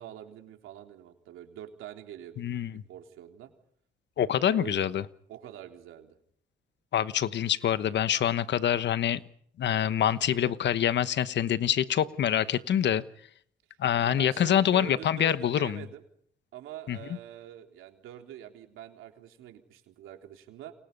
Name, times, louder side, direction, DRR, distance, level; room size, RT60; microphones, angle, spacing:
voice 1, 0.0-2.4 2.7-3.5 4.4-4.9 5.3-6.2 14.0-16.0 16.5-20.7, right 11 dB, 90° right, 4 dB, 3.5 m, -44 dB
voice 2, 2.4-2.7 4.2-5.0 6.9-9.2 9.6-13.0 13.8-15.8 16.9-17.0, left 10 dB, 65° left, 15 dB, 1.2 m, -26 dB
29.5 x 24.0 x 5.4 m, 0.64 s
cardioid pair, 90°, 20 cm